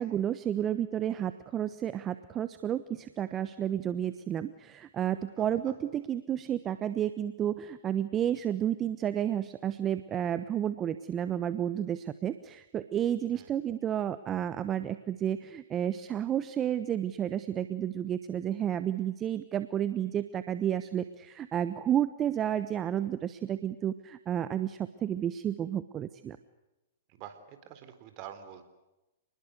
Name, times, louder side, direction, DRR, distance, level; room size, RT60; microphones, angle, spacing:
voice 1, 0.0-26.4, right 10 dB, 25° right, 13 dB, 1.1 m, -31 dB
voice 2, 5.4-5.7 13.3-13.5 27.1-28.6, right 10 dB, 45° right, 10 dB, 3.9 m, -47 dB
29.0 x 20.5 x 8.2 m, 0.97 s
hypercardioid pair, 125°, 0 cm